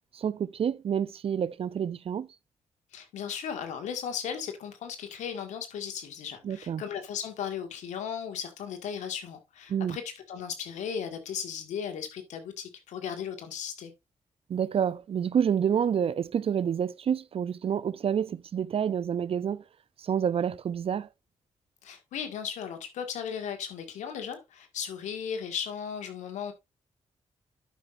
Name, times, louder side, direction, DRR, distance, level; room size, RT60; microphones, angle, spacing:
voice 1, 0.1-2.3 6.4-6.8 9.7-10.0 14.5-19.6 20.0-21.1, right 8 dB, 55° right, 0.5 m, -28 dB
voice 2, 2.9-13.9 21.8-26.5, left 8 dB, 85° left, 1.9 m, -36 dB
12.0 x 5.8 x 2.5 m
cardioid pair, 60°, 12 cm